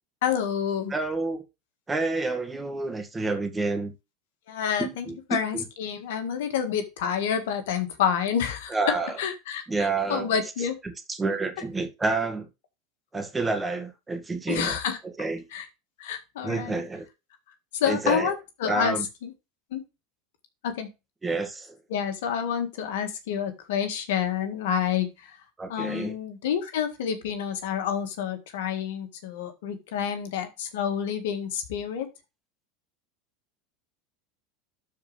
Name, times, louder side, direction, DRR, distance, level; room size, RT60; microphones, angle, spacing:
voice 1, 0.2-0.9 4.5-10.8 14.5-15.0 15.5-15.7 16.0-16.8 17.7-19.3 19.7-19.8 20.6-20.9 21.9-25.4 25.7-32.1, left 8 dB, 75° left, 1.8 m, -28 dB
voice 2, 0.9-1.4 1.9-3.9 4.8-5.2 5.5-5.6 8.7-9.2 9.7-10.3 10.8-12.5 13.1-14.8 15.0-15.4 16.4-17.1 17.9-18.3 18.7-19.0 21.2-21.8 25.6-26.2, right 3 dB, 15° right, 2.1 m, -29 dB
12.0 x 4.6 x 3.4 m
hypercardioid pair, 100°, 0 cm